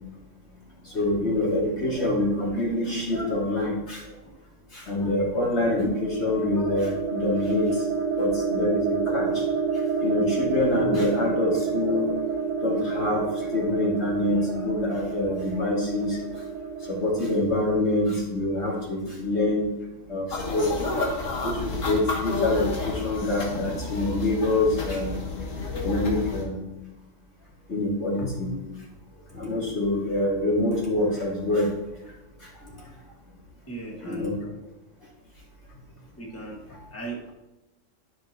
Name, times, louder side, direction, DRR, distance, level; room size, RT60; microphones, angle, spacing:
voice 1, 0.8-4.0 4.7-7.7 8.2-9.4 10.0-12.2 12.6-13.3 13.5-16.2 16.9-19.7 20.1-20.8 21.4-25.3 25.8-26.6 27.7-28.6 29.3-31.7 34.0-34.4 36.7-36.8, left 1 dB, 60° left, -5 dB, 2.8 m, -25 dB
sound 1, 5.6-17.4, right 6 dB, 65° right, 0.8 m, -29 dB
sound 2, 20.3-26.4, left 3 dB, 90° left, 1.8 m, -30 dB
voice 2, 33.7-34.6 36.2-36.6 36.9-37.3, right 2 dB, 10° left, -2 dB, 1.4 m, -38 dB
13.0 x 5.8 x 2.9 m, 0.96 s
omnidirectional pair, 1.3 m